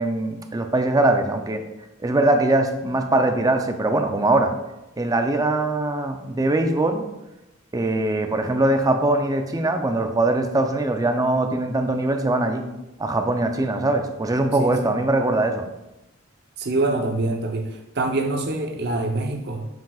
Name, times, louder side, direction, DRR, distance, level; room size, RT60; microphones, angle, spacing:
voice 1, 0.0-1.6 2.0-4.5 5.0-7.0 7.7-12.6 13.0-15.7, right 2 dB, 20° right, 6 dB, 0.5 m, -21 dB
voice 2, 16.6-19.7, right 2 dB, 55° right, 4 dB, 0.8 m, -25 dB
7.3 x 6.0 x 2.4 m, 0.96 s
head